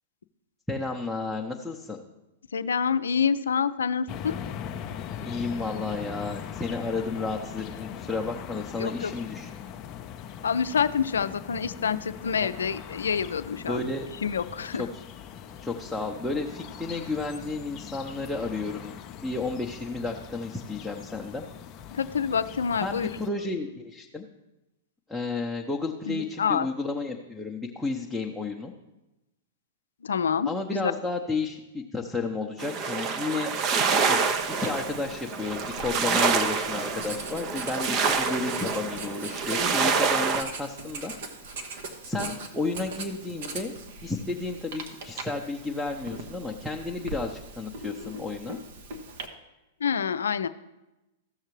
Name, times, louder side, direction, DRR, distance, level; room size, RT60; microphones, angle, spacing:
voice 1, 0.7-2.0 5.3-9.5 12.4-12.5 13.7-14.1 14.7-15.0 15.6-21.4 22.8-24.2 25.1-28.7 30.5-33.5 33.9-41.1 42.0-43.7 44.0-48.6, left 3 dB, ahead, -1 dB, 0.7 m, -32 dB
voice 2, 2.5-4.4 8.8-9.1 10.4-13.8 14.2-14.8 21.9-23.1 26.1-26.7 30.0-30.9 49.8-50.5, left 6 dB, 80° left, 13 dB, 0.4 m, -27 dB
sound 1, 4.1-23.3, left 9 dB, 35° left, 0.6 m, -41 dB
sound 2, 32.6-40.4, right 5 dB, 35° right, 0.7 m, -27 dB
Writing, 34.2-49.3, right 3 dB, 60° right, 1.1 m, -41 dB
14.5 x 6.5 x 3.2 m, 0.99 s
hypercardioid pair, 110°, 0 cm